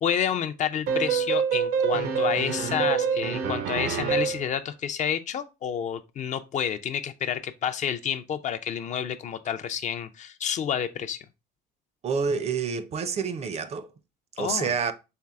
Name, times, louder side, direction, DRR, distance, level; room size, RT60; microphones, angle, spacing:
voice 1, 0.0-11.3 14.4-14.7, left 8 dB, 45° left, 0.4 m, -29 dB
sound 1, 0.9-4.5, right 7 dB, 90° right, 0.6 m, -26 dB
voice 2, 12.0-13.9 14.4-14.9, right 6 dB, 40° right, 0.4 m, -28 dB
4.3 x 3.2 x 2.3 m
cardioid pair, 110°, 17 cm